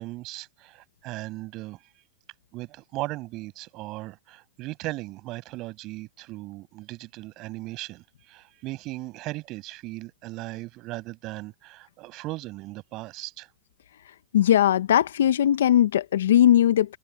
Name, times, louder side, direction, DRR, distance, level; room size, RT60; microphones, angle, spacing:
voice 1, 0.0-1.8 2.5-13.5, right 20 dB, 45° right, 7.8 m, -37 dB
voice 2, 14.3-17.0, left 11 dB, 75° left, 1.3 m, -19 dB
hypercardioid pair, 110°, 0 cm